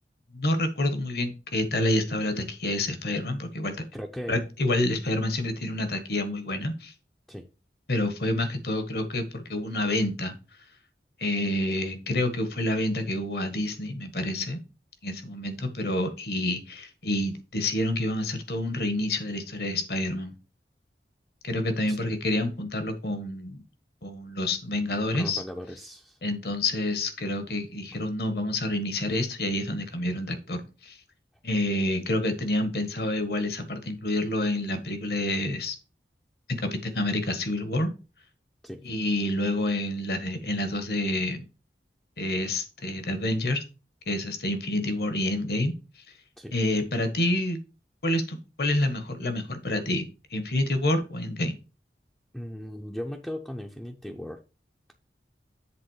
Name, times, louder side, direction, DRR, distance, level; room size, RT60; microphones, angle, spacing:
voice 1, 0.3-3.8 4.3-6.9 7.9-10.3 11.2-14.6 15.0-20.3 21.4-23.6 24.0-25.4 26.2-31.0 31.4-35.8 36.6-37.9 38.8-41.4 42.2-43.6 44.1-45.8 46.5-47.6 48.0-50.0 50.3-51.5, left 1 dB, 60° left, 9 dB, 1.4 m, -28 dB
voice 2, 3.9-4.4 7.3-7.5 21.9-22.0 25.1-26.2 27.9-28.0 38.6-38.8 46.4-46.5 52.3-54.4, equal, 5° left, 1 dB, 0.5 m, -37 dB
7.7 x 3.6 x 6.4 m, 0.32 s
head